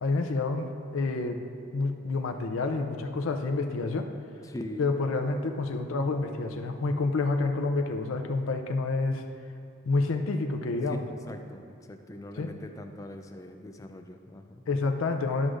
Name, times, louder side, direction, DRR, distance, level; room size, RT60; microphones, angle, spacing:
voice 1, 0.0-1.4 1.7-4.1 4.8-9.2 9.9-11.0 12.4-12.5 14.7-15.5, left 3 dB, 90° left, 4 dB, 0.5 m, -28 dB
voice 2, 4.4-4.9 10.9-11.0 11.3-14.6, left 1 dB, 15° left, 5 dB, 0.3 m, -41 dB
12.5 x 6.2 x 2.5 m, 2.4 s
head